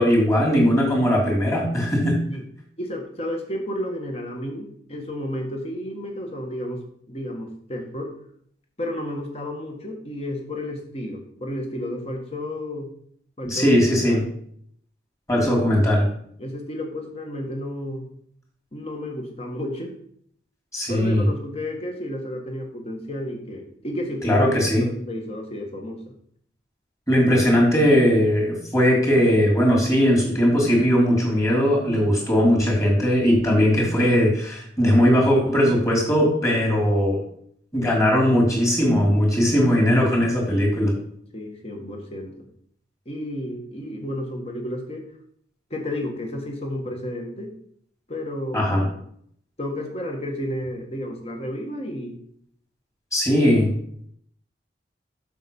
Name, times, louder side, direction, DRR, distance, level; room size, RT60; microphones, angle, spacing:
voice 1, 0.0-2.2 13.4-14.3 15.3-16.1 20.7-21.3 24.2-24.9 27.1-37.2 37.7-40.9 48.5-48.9 53.1-53.7, equal, 15° left, -2 dB, 3.2 m, -19 dB
voice 2, 2.8-8.1 8.8-12.9 13.4-13.8 14.1-14.3 15.3-15.6 16.4-18.1 18.7-19.9 20.9-26.1 41.3-42.5 43.1-45.0 45.7-47.5 48.1-48.9 49.6-52.2, left 1 dB, 35° left, 2 dB, 1.7 m, -32 dB
7.4 x 6.5 x 5.5 m, 0.66 s
head